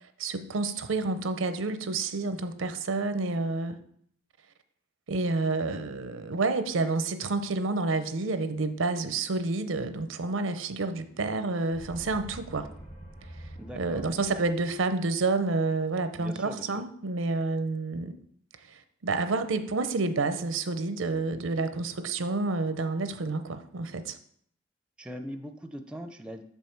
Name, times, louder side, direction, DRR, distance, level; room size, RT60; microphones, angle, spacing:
voice 1, 0.2-3.8 5.1-12.7 13.7-18.1 18.7-24.2, right 3 dB, 90° right, 10 dB, 0.6 m, -29 dB
sound 1, 11.7-15.3, right 1 dB, 40° left, 1.2 m, -46 dB
voice 2, 13.6-14.0 16.1-16.8 25.0-26.4, equal, 5° right, 7 dB, 0.5 m, -41 dB
6.8 x 5.4 x 4.5 m, 0.65 s
head